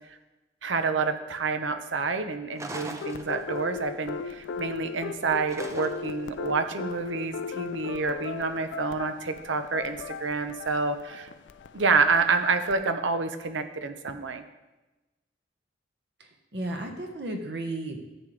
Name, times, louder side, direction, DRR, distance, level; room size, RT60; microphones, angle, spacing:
voice 1, 0.6-11.3 11.7-14.4, right 4 dB, 85° right, 8 dB, 0.8 m, -28 dB
sound 1, 2.6-3.8 5.5-6.3, right 2 dB, 15° right, 0.5 m, -40 dB
sound 2, 3.0-12.8, left 5 dB, 75° left, 0.4 m, -37 dB
voice 2, 16.2-18.0, right 1 dB, 60° right, 3 dB, 1.3 m, -34 dB
12.0 x 7.7 x 3.3 m, 1.1 s
head